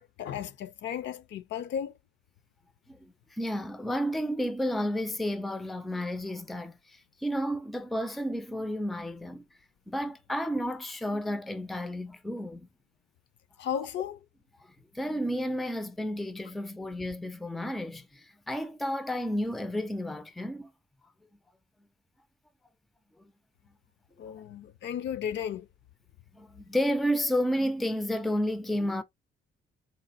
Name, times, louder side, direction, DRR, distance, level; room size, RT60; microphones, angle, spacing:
voice 1, 0.0-2.0 13.6-14.2 24.2-25.7, left 9 dB, 65° left, 0.5 m, -35 dB
voice 2, 2.9-9.4 9.9-12.7 14.6-20.7 26.3-29.0, equal, ahead, 0.3 m, -31 dB
4.1 x 2.1 x 2.6 m
cardioid pair, 90°, 20 cm